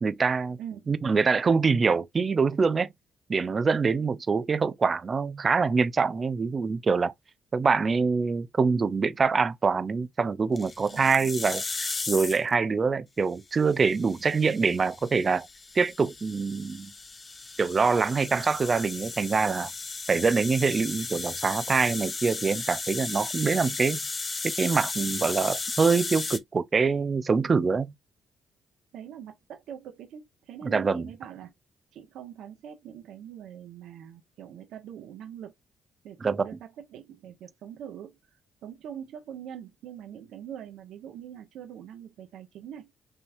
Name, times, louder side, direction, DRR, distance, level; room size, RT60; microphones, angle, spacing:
voice 1, 0.0-0.6 0.9-2.9 3.3-7.1 7.5-15.5 15.7-16.9 17.6-19.7 20.1-24.0 24.4-27.9 30.6-31.1 36.2-36.3, right 5 dB, 35° right, 0.6 m, -25 dB
voice 2, 0.6-0.9 10.9-11.3 28.9-31.5 31.9-35.5 36.0-38.2 38.6-42.9, right 9 dB, 80° right, 1.3 m, -43 dB
sound 1, 10.6-12.5 13.6-26.4, left 3 dB, 30° left, 0.9 m, -35 dB
5.4 x 3.3 x 2.6 m
cardioid pair, 90°, 0 cm